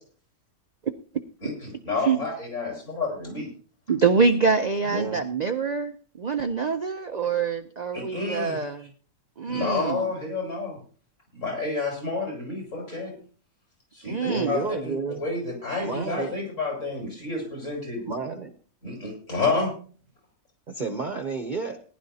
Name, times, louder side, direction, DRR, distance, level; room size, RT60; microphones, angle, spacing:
voice 1, 1.4-3.5 7.9-8.6 9.5-10.8 11.3-13.1 13.9-14.2 14.5-14.9 15.2-18.0 18.8-19.7, left 3 dB, 55° left, -2 dB, 6.8 m, -29 dB
voice 2, 3.9-8.9 9.4-10.1 14.0-14.6, right 5 dB, 70° right, 6 dB, 0.4 m, -25 dB
voice 3, 4.9-5.2 14.2-15.2 15.8-16.4 18.0-18.5 20.7-21.8, right 4 dB, 40° right, 6 dB, 0.8 m, -31 dB
19.0 x 11.0 x 2.8 m, 0.41 s
omnidirectional pair, 1.6 m